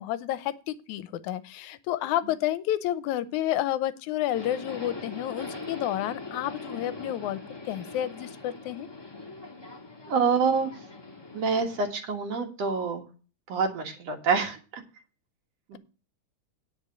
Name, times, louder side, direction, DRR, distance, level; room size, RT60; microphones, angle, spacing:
voice 1, 0.0-7.4 7.7-8.9, left 13 dB, 85° left, 15 dB, 2.1 m, -30 dB
Subway metro underground, 4.3-11.9, left 3 dB, 10° left, 1.2 m, -41 dB
voice 2, 10.1-10.7 11.3-13.1 13.5-14.8 15.7-15.8, right 5 dB, 60° right, 4 dB, 2.5 m, -26 dB
9.9 x 5.3 x 7.8 m, 0.35 s
omnidirectional pair, 3.5 m